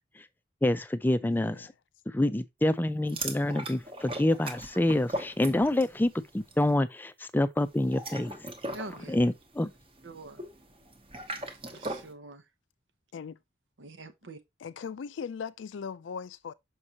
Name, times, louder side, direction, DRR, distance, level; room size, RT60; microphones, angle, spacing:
voice 1, 0.6-1.7 2.1-8.4 9.1-9.7, left 1 dB, 10° left, 0.3 m, -27 dB
voice 2, 1.2-1.7 13.1-13.4 14.6-16.5, left 6 dB, 85° left, 0.4 m, -39 dB
sound 1, 3.1-6.0 6.3-6.6 7.7-12.1, right 1 dB, 30° right, 0.9 m, -39 dB
voice 3, 8.7-9.2 10.0-10.4 11.7-12.5 13.8-14.4, right 2 dB, 90° right, 0.9 m, -44 dB
6.3 x 5.3 x 2.8 m
head